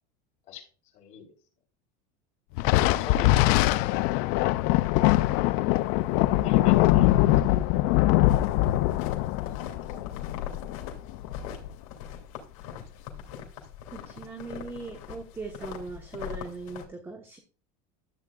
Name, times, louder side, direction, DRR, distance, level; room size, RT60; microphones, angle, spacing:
voice 1, 0.9-1.3 3.0-3.5 5.8-7.3 9.4-10.1, left 7 dB, 40° left, -1 dB, 4.1 m, -41 dB
Thunder, 2.6-11.3, left 16 dB, 55° left, 0.4 m, -23 dB
sound 1, 8.2-16.8, left 9 dB, 75° left, 2.6 m, -41 dB
voice 2, 13.9-17.4, right 4 dB, 15° right, 4 dB, 1.2 m, -39 dB
13.0 x 8.2 x 2.4 m, 0.35 s
supercardioid pair, 150°, 18 cm